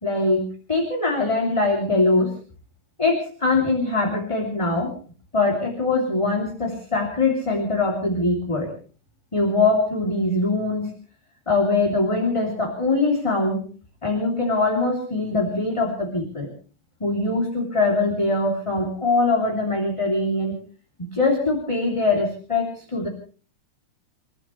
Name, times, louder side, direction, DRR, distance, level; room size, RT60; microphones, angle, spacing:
voice 1, 0.0-2.3 3.0-4.9 5.3-8.7 9.3-10.9 11.5-13.6 14.0-16.5 17.0-20.6 21.0-23.1, left 2 dB, 10° left, 0 dB, 2.8 m, -22 dB
29.0 x 15.0 x 3.2 m, 0.39 s
omnidirectional pair, 3.6 m